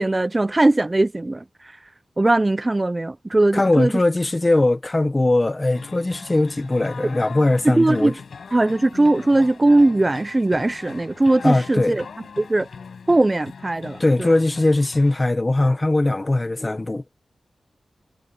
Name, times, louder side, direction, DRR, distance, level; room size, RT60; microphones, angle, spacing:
voice 1, 0.0-1.8 2.2-3.9 7.6-8.1 8.5-12.0 12.4-12.7 13.1-14.3, right 2 dB, 20° right, 0.4 m, -19 dB
voice 2, 3.5-8.1 11.4-12.0 14.0-17.0, left 2 dB, 20° left, 1.1 m, -20 dB
sound 1, 5.7-15.2, left 5 dB, 65° left, 7.9 m, -40 dB
wide cardioid pair, 175°, 0 cm